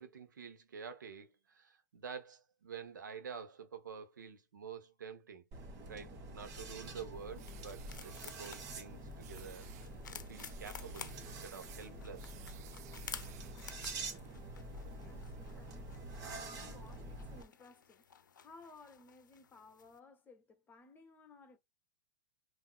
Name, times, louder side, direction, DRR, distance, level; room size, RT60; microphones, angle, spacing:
voice 1, 0.0-5.4 5.9-12.5, right 6 dB, 80° right, 1.0 m, -49 dB
sound 1, 5.5-17.4, right 2 dB, 35° right, 1.5 m, -47 dB
sound 2, 7.1-20.0, left 7 dB, 85° left, 0.5 m, -54 dB
sound 3, 7.4-8.8 9.2-9.9 10.3-13.7, right 12 dB, 55° right, 0.5 m, -57 dB
voice 2, 15.0-18.1 18.3-21.6, left 3 dB, 20° left, 1.0 m, -59 dB
5.7 x 2.7 x 2.2 m
hypercardioid pair, 110°, 10 cm